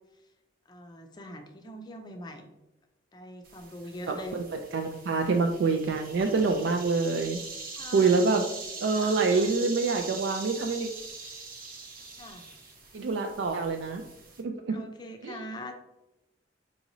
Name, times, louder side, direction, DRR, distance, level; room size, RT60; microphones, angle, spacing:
voice 1, 0.7-2.5 3.1-4.4 7.8-8.2 8.9-9.4 12.2-12.5 14.7-15.7, left 1 dB, 25° left, 5 dB, 0.5 m, -43 dB
sound 1, 3.4-14.4, right 4 dB, 55° right, 0.7 m, -42 dB
voice 2, 4.1-7.4 7.9-8.5 8.8-10.9 12.9-14.0 14.4-14.8 15.2-15.4, right 4 dB, 80° right, 3 dB, 0.4 m, -26 dB
4.8 x 3.0 x 2.6 m, 0.94 s
head